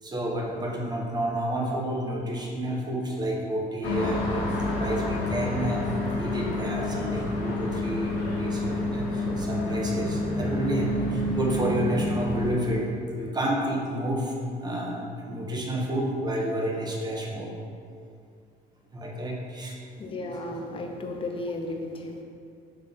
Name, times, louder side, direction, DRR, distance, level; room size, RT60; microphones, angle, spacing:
voice 1, 0.0-4.5 4.7-5.9 6.2-17.5 18.9-19.8 20.5-20.6, right 1 dB, 25° right, -2 dB, 1.2 m, -30 dB
sound 1, 3.8-12.5, left 1 dB, 70° left, 1.5 m, -28 dB
voice 2, 20.0-22.2, left 2 dB, 30° left, 2 dB, 0.8 m, -34 dB
5.7 x 3.4 x 5.5 m, 2.4 s
cardioid pair, 110°, 17 cm